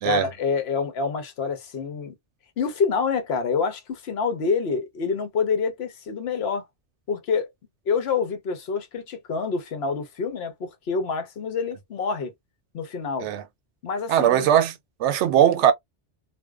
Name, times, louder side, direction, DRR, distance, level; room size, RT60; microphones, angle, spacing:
voice 1, 0.0-2.1 2.6-6.6 7.1-7.5 7.9-12.3 12.7-13.3 13.8-14.5, left 5 dB, 65° left, 0.9 m, -27 dB
voice 2, 14.1-15.7, right 10 dB, 85° right, 0.9 m, -20 dB
2.5 x 2.1 x 2.2 m
omnidirectional pair, 1.2 m